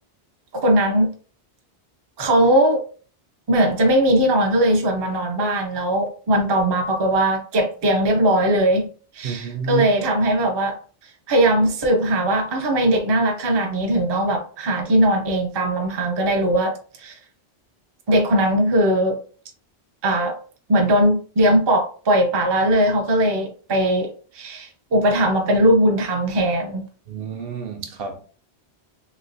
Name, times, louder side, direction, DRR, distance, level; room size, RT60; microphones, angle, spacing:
voice 1, 0.5-1.1 2.2-2.8 3.5-8.9 9.1-10.8 11.3-17.1 18.1-19.2 20.0-20.4 20.7-24.1 24.3-26.8, right 1 dB, 35° right, 0.5 m, -19 dB
voice 2, 9.2-9.9 27.1-28.3, right 6 dB, 65° right, 0.8 m, -29 dB
3.2 x 3.0 x 2.5 m
omnidirectional pair, 1.1 m